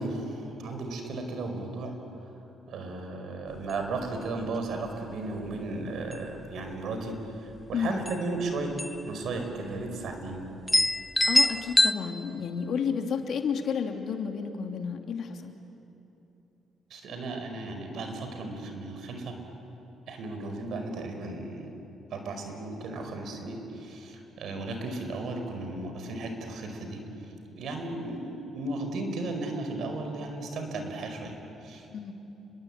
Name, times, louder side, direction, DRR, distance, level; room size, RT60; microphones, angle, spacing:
voice 1, 0.0-2.3 2.7-8.7 9.0-10.4 16.9-19.3 20.1-21.7 22.1-27.0 27.5-31.3 31.6-31.9, right 2 dB, 70° right, 5 dB, 4.9 m, -35 dB
sound 1, 3.6-3.7 4.0-4.1 4.5-4.9 5.5-5.7 6.0-6.6 7.7-7.8 8.1-8.2 8.8-9.1 9.4-9.5 10.1-10.2 10.7-11.9, left 1 dB, 5° left, 0.6 m, -24 dB
voice 2, 11.2-15.5 31.9-32.2, left 6 dB, 65° left, 4 dB, 2.7 m, -31 dB
30.0 x 22.5 x 8.9 m, 2.9 s
cardioid pair, 90°, 0 cm